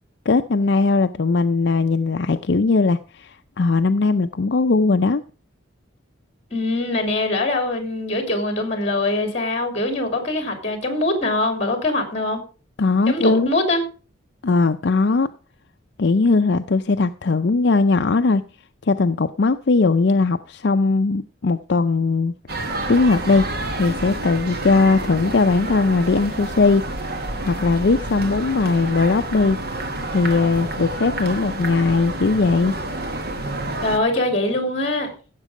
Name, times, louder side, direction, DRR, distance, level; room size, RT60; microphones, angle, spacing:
voice 1, 0.3-5.2 12.8-13.5 14.4-15.3 16.0-18.4 18.9-22.3 22.6-23.5 23.8-26.8 27.4-29.6 30.1-32.8, left 3 dB, 55° left, 0.5 m, -19 dB
voice 2, 6.5-12.4 13.1-13.8 33.8-35.1, left 2 dB, 30° left, 2.8 m, -23 dB
sound 1, 22.5-34.0, right 2 dB, 50° right, 1.6 m, -29 dB
15.0 x 7.4 x 4.9 m
head